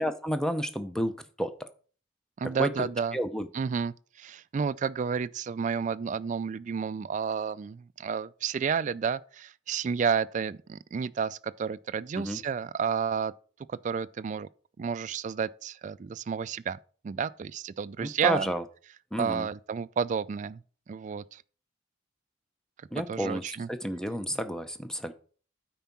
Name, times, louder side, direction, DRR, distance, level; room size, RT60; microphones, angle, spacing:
voice 1, 0.0-1.7 2.6-2.9 3.1-3.5 12.2-12.4 18.0-18.6 19.1-19.5 22.9-23.4 23.7-25.1, equal, 5° left, 0.6 m, -31 dB
voice 2, 2.4-3.2 3.5-13.3 13.7-14.5 14.8-16.8 17.0-18.5 19.2-20.6 20.9-21.4 23.1-23.7, right 6 dB, 40° right, 0.3 m, -31 dB
9.1 x 4.6 x 5.9 m
head